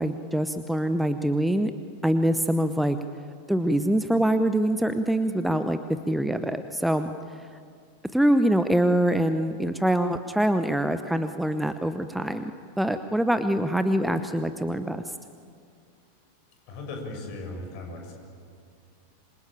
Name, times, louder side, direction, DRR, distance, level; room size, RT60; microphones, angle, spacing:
voice 1, 0.0-1.7 2.0-3.0 3.5-5.8 6.1-7.1 8.1-12.5 12.8-15.1, right 1 dB, ahead, 10 dB, 0.9 m, -24 dB
voice 2, 16.7-18.1, left 2 dB, 45° left, 3 dB, 6.9 m, -37 dB
27.0 x 24.0 x 8.9 m, 2.3 s
figure-of-eight pair, 90°, 0 cm